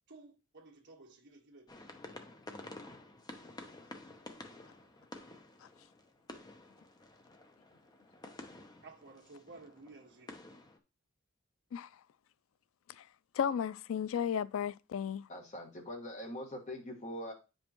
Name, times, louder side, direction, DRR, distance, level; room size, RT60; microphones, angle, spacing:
voice 1, 0.1-1.7 8.8-10.4, right 3 dB, 60° right, 1.6 m, -54 dB
sound 1, 1.7-10.8, left 2 dB, 20° left, 0.8 m, -51 dB
voice 2, 13.3-15.3, left 8 dB, 75° left, 0.3 m, -34 dB
voice 3, 15.3-17.3, left 1 dB, 35° left, 1.7 m, -43 dB
9.5 x 5.4 x 3.0 m
head